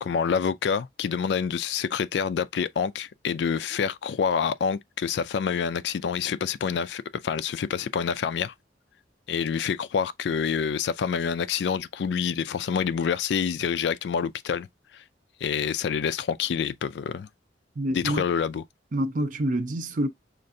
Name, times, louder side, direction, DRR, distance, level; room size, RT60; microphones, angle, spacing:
voice 1, 0.0-8.5 9.3-14.7 14.9-15.0 15.4-17.3 17.9-18.6, left 7 dB, 75° left, 0.3 m, -27 dB
voice 2, 17.8-18.2 18.9-20.1, right 1 dB, 50° right, 0.6 m, -27 dB
6.3 x 2.5 x 2.6 m
head